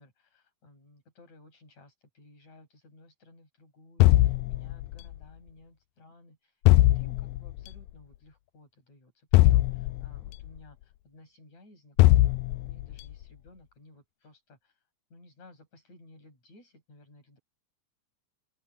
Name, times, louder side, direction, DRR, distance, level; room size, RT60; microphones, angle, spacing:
voice 1, 0.0-12.4 12.7-14.7 15.1-17.4, left 2 dB, 60° left, 9.1 m, -56 dB
sound 1, 4.0-5.1 6.7-7.6 9.3-10.4 12.0-13.0, left 17 dB, 85° left, 2.1 m, -21 dB
open air
omnidirectional pair, 3.6 m